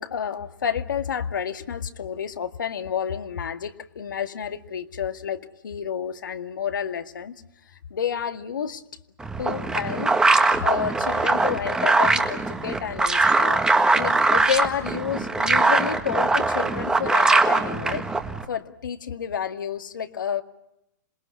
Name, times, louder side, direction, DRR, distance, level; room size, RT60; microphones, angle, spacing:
voice 1, 0.0-7.4 7.9-8.8 9.4-10.1 10.6-13.6 14.0-18.0 18.5-20.4, left 8 dB, 75° left, 7 dB, 2.0 m, -30 dB
sound 1, 9.2-18.4, right 3 dB, 5° right, 1.6 m, -21 dB
27.0 x 20.5 x 8.5 m, 0.82 s
hypercardioid pair, 135°, 11 cm